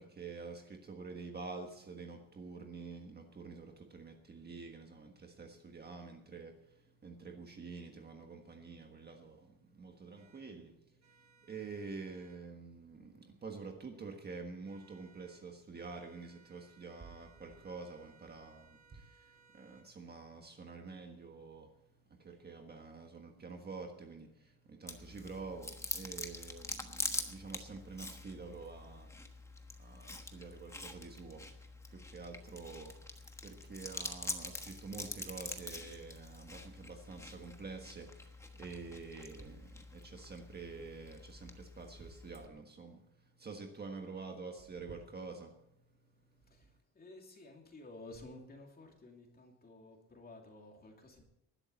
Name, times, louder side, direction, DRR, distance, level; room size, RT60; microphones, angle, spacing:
voice 1, 0.0-46.7, right 4 dB, 25° right, 3 dB, 1.5 m, -48 dB
sound 1, 10.2-10.4 11.0-12.4 14.6-15.4 15.7-19.9, right 6 dB, 45° right, 5.0 m, -66 dB
Chewing mastication, 24.9-42.5, left 2 dB, 5° left, 1.2 m, -45 dB
voice 2, 46.4-51.2, left 2 dB, 25° left, 2 dB, 2.7 m, -54 dB
20.0 x 11.5 x 4.1 m, 0.81 s
cardioid pair, 165°, 38 cm